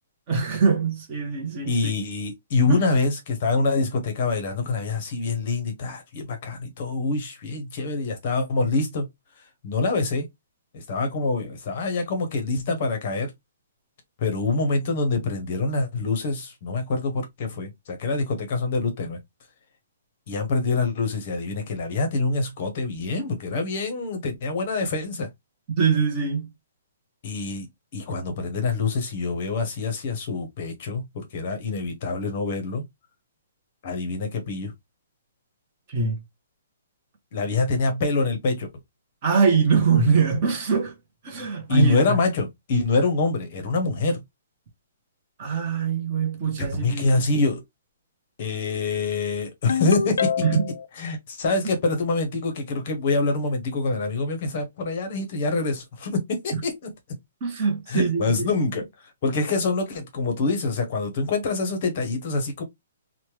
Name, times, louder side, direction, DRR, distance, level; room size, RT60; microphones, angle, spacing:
voice 1, 0.3-1.9 2.7-2.9 25.8-26.5 35.9-36.2 39.2-40.9 41.2-42.2 45.4-47.2 50.4-50.7 56.5-56.6 57.4-58.2, right 5 dB, 25° right, 0.7 m, -23 dB
voice 2, 1.7-9.1 9.6-10.3 10.7-13.3 14.2-19.2 20.3-25.3 27.2-27.7 27.9-32.8 33.8-34.7 37.3-38.7 41.7-44.2 46.7-47.6 48.4-50.3 51.0-56.7 57.9-62.6, left 3 dB, 30° left, 0.7 m, -25 dB
Ringtone, 49.7-50.9, left 6 dB, 85° left, 0.4 m, -25 dB
3.1 x 2.1 x 3.0 m
hypercardioid pair, 180°, 0 cm